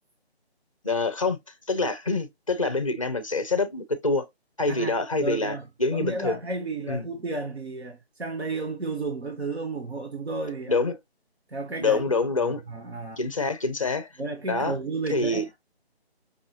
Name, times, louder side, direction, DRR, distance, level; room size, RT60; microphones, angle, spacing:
voice 1, 0.8-1.4 1.7-4.3 4.6-6.4 6.9-7.1 10.7-11.0 11.8-12.6 13.2-14.1 14.5-14.8 15.1-15.4, left 3 dB, 30° left, 0.5 m, -26 dB
voice 2, 4.7-10.8 11.5-12.1 12.4-13.2 14.2-15.5, right 3 dB, 75° right, 1.3 m, -33 dB
5.4 x 2.5 x 2.9 m
figure-of-eight pair, 165°, 33 cm